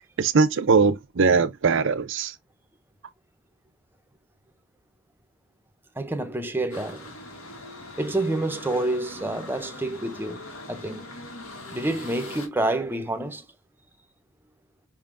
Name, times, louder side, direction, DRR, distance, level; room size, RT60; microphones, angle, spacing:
voice 1, 0.2-2.3, right 4 dB, 65° right, 0.6 m, -21 dB
voice 2, 6.0-7.1 8.0-11.1 11.7-13.5, right 2 dB, 10° right, 0.7 m, -28 dB
sound 1, 6.7-12.5, left 2 dB, 85° left, 1.8 m, -41 dB
5.5 x 3.6 x 2.5 m
head